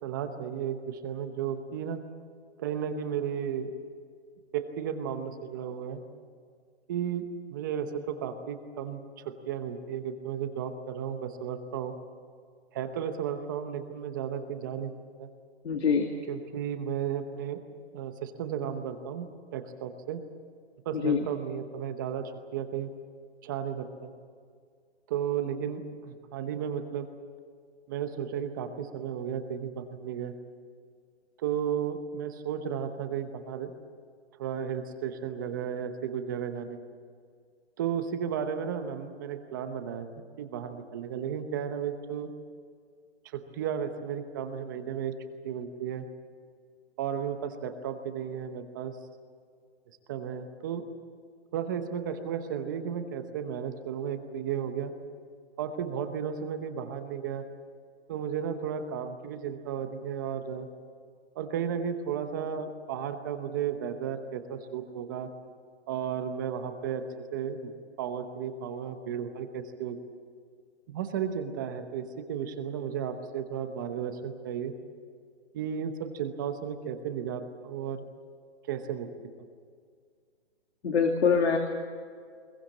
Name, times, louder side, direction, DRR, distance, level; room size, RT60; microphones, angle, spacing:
voice 1, 0.0-2.0 2.6-3.7 4.5-6.0 6.9-12.0 12.7-14.9 15.2-15.3 16.3-17.6 17.9-20.2 20.8-22.9 23.4-24.1 25.1-27.1 27.9-30.3 31.4-33.7 34.4-36.8 37.8-40.1 40.4-42.3 43.2-45.1 45.4-46.1 47.0-49.0 50.1-50.8 51.5-54.9 55.6-57.4 58.1-60.7 61.3-65.3 65.9-67.0 67.3-67.7 68.0-70.0 70.9-74.7 75.5-78.1 78.7-79.1, right 8 dB, 20° right, 8 dB, 0.9 m, -34 dB
voice 2, 15.6-16.1 20.9-21.3 80.8-81.6, left 6 dB, 70° left, 3 dB, 2.5 m, -24 dB
21.5 x 20.0 x 8.8 m, 2.1 s
hypercardioid pair, 165°, 34 cm